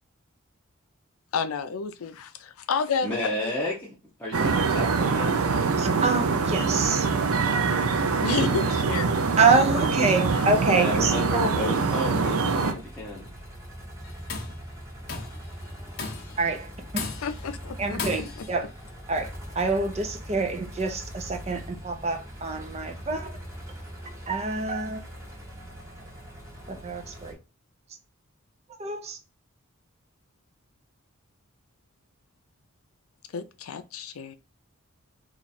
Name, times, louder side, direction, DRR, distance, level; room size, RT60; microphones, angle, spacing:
voice 1, 1.3-3.5 8.2-9.3 10.3-10.4 17.2-18.0 33.3-34.3, left 5 dB, 85° left, 0.4 m, -30 dB
voice 2, 3.0-3.9 4.2-5.7 8.6-8.7 10.7-13.3, left 1 dB, 10° left, 0.7 m, -32 dB
sound 1, 4.3-12.7, right 4 dB, 90° right, 0.5 m, -24 dB
voice 3, 5.8-7.1 9.4-11.5 16.4-16.7 17.8-18.7 19.1-23.3 24.3-25.0 26.7-27.4 28.8-29.2, right 4 dB, 30° right, 0.5 m, -26 dB
sound 2, 12.6-27.3, equal, 15° right, 0.9 m, -41 dB
Tools, 14.0-14.6 15.1-15.5 16.0-16.4 17.0-17.5 18.0-18.6, left 4 dB, 50° left, 0.7 m, -35 dB
3.0 x 2.5 x 4.1 m
head